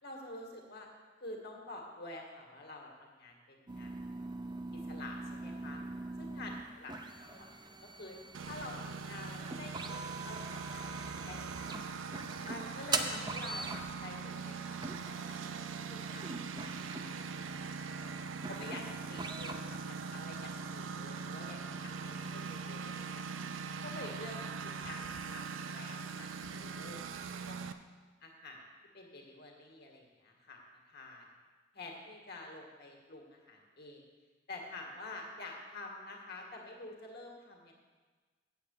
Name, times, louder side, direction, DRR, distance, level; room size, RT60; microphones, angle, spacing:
voice 1, 0.0-0.9 1.2-4.2 4.7-5.8 6.2-6.5 6.8-6.9 7.2-11.9 12.4-17.9 18.5-23.4 23.8-24.4 24.6-25.0 25.3-25.4 25.7-27.2 27.5-27.6 28.2-28.6 28.9-30.6 30.9-31.3 31.7-34.0 34.5-37.8, left 2 dB, 55° left, 0 dB, 1.9 m, -48 dB
sound 1, 3.7-20.1, right 3 dB, 25° right, 0.6 m, -42 dB
Engine, 8.3-27.7, right 5 dB, 85° right, 0.5 m, -42 dB
8.2 x 8.0 x 6.7 m, 1.4 s
head